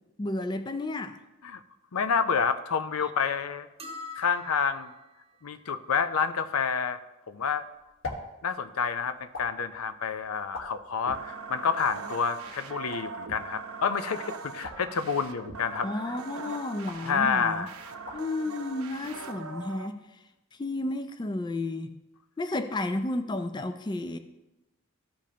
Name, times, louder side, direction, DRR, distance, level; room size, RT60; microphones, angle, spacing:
voice 1, 0.2-1.2 15.8-17.7 18.1-20.2 20.5-22.0 22.4-24.2, left 2 dB, 20° left, 9 dB, 0.3 m, -32 dB
voice 2, 1.9-3.7 4.2-4.9 5.4-7.0 7.3-7.6 8.4-15.9 17.0-17.7, left 6 dB, 90° left, 11 dB, 0.6 m, -28 dB
sound 1, 3.8-5.1, left 3 dB, 30° right, 0.8 m, -43 dB
Plopping Plop Popping, 7.4-19.5, left 2 dB, 75° left, 1.4 m, -47 dB
sound 2, 11.1-19.9, right 4 dB, 85° right, 0.7 m, -41 dB
14.5 x 5.2 x 2.9 m, 1.0 s
head